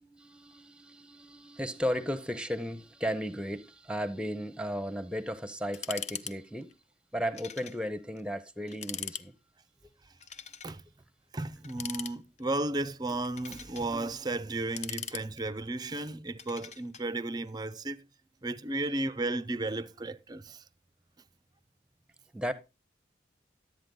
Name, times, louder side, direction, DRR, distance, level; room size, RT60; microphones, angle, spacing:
voice 1, 0.0-6.7 7.1-9.3 22.3-22.5, equal, 5° right, 0.8 m, -35 dB
sound 1, 5.7-6.4 6.6-6.7 7.3-7.8 8.2-8.3 8.7-9.3 10.2-10.7 11.6-12.5 13.1-13.9 14.5-15.7 16.4-17.0, left 8 dB, 40° left, 0.6 m, -41 dB
voice 2, 11.3-18.1 18.4-20.7, right 2 dB, 20° right, 0.5 m, -34 dB
12.0 x 8.7 x 3.9 m
head